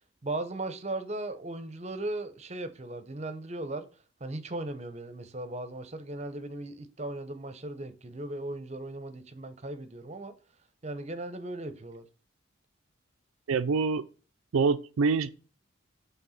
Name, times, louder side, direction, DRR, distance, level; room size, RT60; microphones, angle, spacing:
voice 1, 0.2-3.9 4.2-10.3 10.8-12.1, right 2 dB, 30° right, 0.7 m, -37 dB
voice 2, 13.5-14.0 14.5-15.3, right 4 dB, 85° right, 0.4 m, -25 dB
7.1 x 3.4 x 5.6 m
head